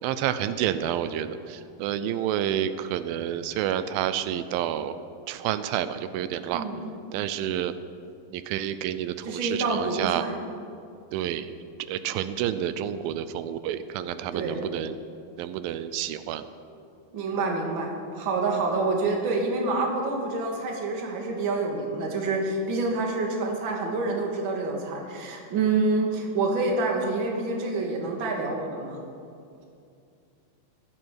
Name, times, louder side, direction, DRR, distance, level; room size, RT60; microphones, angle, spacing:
voice 1, 0.0-5.0 5.3-6.6 7.1-7.7 8.3-10.2 11.1-11.5 11.8-15.0 15.4-16.4, right 10 dB, 85° right, 12 dB, 2.3 m, -29 dB
voice 2, 6.5-6.8 9.2-10.3 14.3-14.7 17.1-29.0, right 3 dB, 45° right, 1 dB, 1.9 m, -27 dB
15.0 x 12.5 x 4.7 m, 2.5 s
omnidirectional pair, 4.1 m